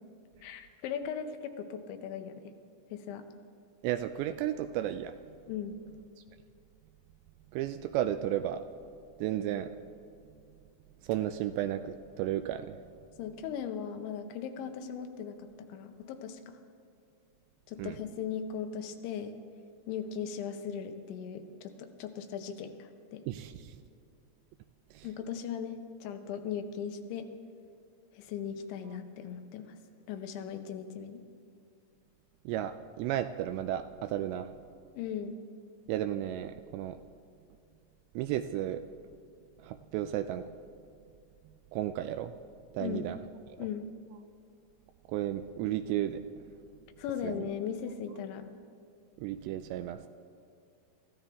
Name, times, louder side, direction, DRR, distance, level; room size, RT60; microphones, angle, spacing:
voice 1, 0.4-2.5 2.9-3.3 5.5-5.8 13.2-16.6 17.7-19.3 19.9-23.2 25.0-27.3 28.1-29.8 30.1-31.2 35.0-35.4 42.8-43.1 43.6-43.9 47.0-48.5, left 7 dB, 90° left, 7 dB, 3.4 m, -38 dB
voice 2, 3.8-5.2 7.5-8.6 9.2-9.7 11.0-12.8 17.8-18.0 23.3-23.8 24.9-25.1 32.5-34.5 35.9-37.0 38.2-38.8 39.6-40.5 41.7-42.3 42.7-43.2 45.1-46.2 47.2-47.5 49.2-50.1, right 12 dB, 85° right, 9 dB, 2.6 m, -33 dB
26.5 x 14.5 x 3.6 m, 2.4 s
omnidirectional pair, 5.2 m